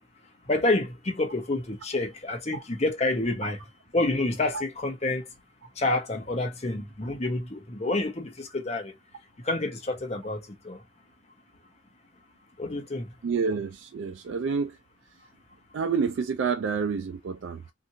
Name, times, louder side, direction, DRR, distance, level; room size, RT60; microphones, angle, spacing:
voice 1, 0.5-3.6 3.9-5.2 5.8-8.9 9.4-10.8 12.6-13.1, left 2 dB, 35° left, 0.8 m, -28 dB
voice 2, 13.2-14.8 15.7-17.7, right 5 dB, 75° right, 0.4 m, -28 dB
2.9 x 2.5 x 2.7 m
head